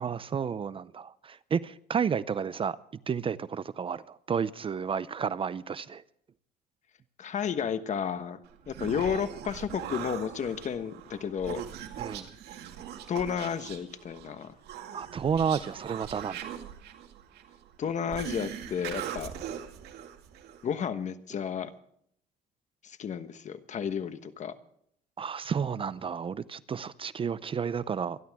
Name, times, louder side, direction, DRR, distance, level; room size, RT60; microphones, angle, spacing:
voice 1, 0.0-2.8 3.1-6.0 12.0-12.3 14.9-16.5 25.2-28.2, right 7 dB, 30° right, 0.5 m, -31 dB
voice 2, 7.2-8.4 8.7-11.6 13.1-14.5 17.8-19.3 20.6-21.7 22.8-24.5, left 7 dB, 45° left, 1.2 m, -32 dB
Human voice, 8.4-20.7, right 9 dB, 75° right, 2.2 m, -41 dB
26.0 x 11.5 x 3.6 m
cardioid pair, 110°, 17 cm